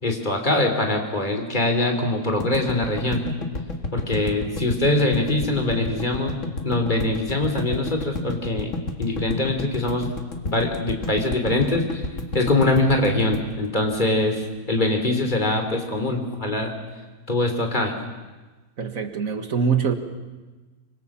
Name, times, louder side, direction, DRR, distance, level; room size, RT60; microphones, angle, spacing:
voice 1, 0.0-3.2 3.9-6.4 6.6-8.7 9.0-10.1 10.4-12.1 12.3-16.7 17.3-17.9, left 2 dB, 30° left, 4 dB, 3.3 m, -23 dB
sound 1, 2.4-14.6, left 2 dB, 55° left, 2.3 m, -31 dB
voice 2, 18.8-19.9, right 6 dB, 65° right, 7 dB, 2.2 m, -23 dB
25.0 x 24.5 x 7.4 m, 1.2 s
omnidirectional pair, 1.6 m